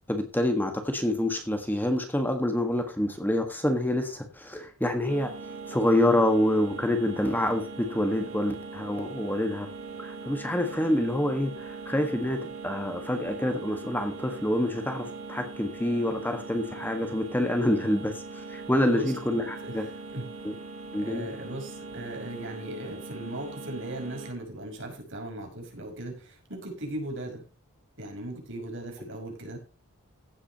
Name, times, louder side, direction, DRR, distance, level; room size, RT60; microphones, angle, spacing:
voice 1, 0.1-5.3 5.7-9.7 10.0-19.9 20.4-20.5 20.9-21.3, left 1 dB, 10° left, 5 dB, 1.5 m, -27 dB
sound 1, 5.1-24.3, right 4 dB, 75° right, 3.3 m, -41 dB
voice 2, 19.4-20.3 21.0-27.4 28.0-29.6, right 1 dB, 60° right, 1 dB, 5.6 m, -38 dB
15.5 x 8.7 x 2.9 m, 0.36 s
head